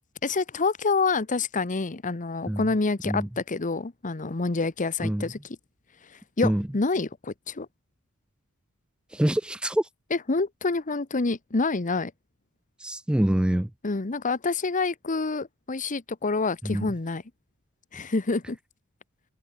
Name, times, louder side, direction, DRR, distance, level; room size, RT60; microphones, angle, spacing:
voice 1, 0.2-5.4 6.4-7.7 10.1-12.1 13.8-17.2 17.9-18.6, left 3 dB, 35° left, 0.9 m, -27 dB
voice 2, 9.1-9.9 12.8-13.7 16.6-16.9, right 1 dB, 5° right, 0.3 m, -25 dB
head